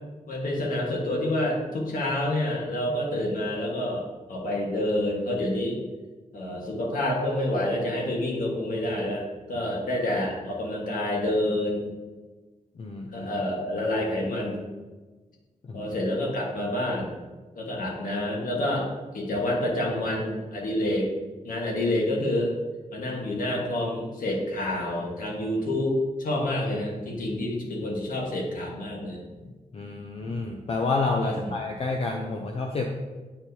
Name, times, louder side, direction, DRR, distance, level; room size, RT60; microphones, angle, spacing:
voice 1, 0.3-5.8 6.3-11.9 13.1-14.6 15.7-17.1 17.5-18.9 19.1-21.1 21.4-22.5 22.9-25.9 26.2-29.2 31.2-31.6, left 1 dB, 85° left, -1 dB, 1.5 m, -28 dB
voice 2, 12.8-13.3 15.7-15.9 29.7-32.9, left 3 dB, 45° left, 1 dB, 0.5 m, -29 dB
8.4 x 4.5 x 2.8 m, 1.3 s
wide cardioid pair, 150°, 14 cm